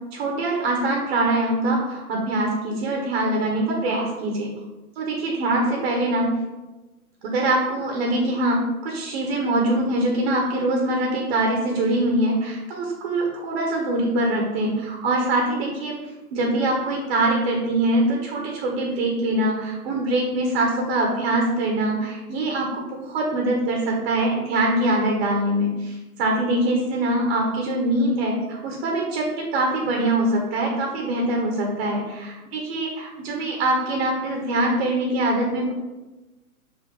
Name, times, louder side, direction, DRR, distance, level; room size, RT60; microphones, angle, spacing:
voice 1, 0.1-4.5 5.0-6.3 7.2-16.0 16.3-35.7, right 1 dB, 40° right, 0 dB, 1.3 m, -23 dB
6.3 x 3.0 x 5.5 m, 1.1 s
figure-of-eight pair, 120°, 45 cm